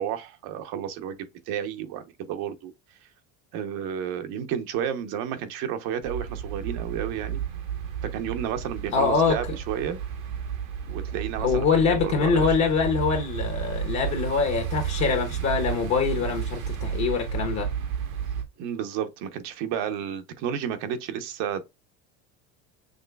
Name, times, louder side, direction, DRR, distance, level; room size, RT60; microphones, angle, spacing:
voice 1, 0.0-2.7 3.5-7.4 8.1-10.0 10.9-12.5 18.6-21.6, right 9 dB, 65° right, 0.9 m, -31 dB
sound 1, 6.0-18.4, right 8 dB, 85° right, 1.4 m, -32 dB
voice 2, 8.9-9.4 11.4-17.7, left 5 dB, 40° left, 1.1 m, -24 dB
6.4 x 3.0 x 2.3 m
supercardioid pair, 110°, 41 cm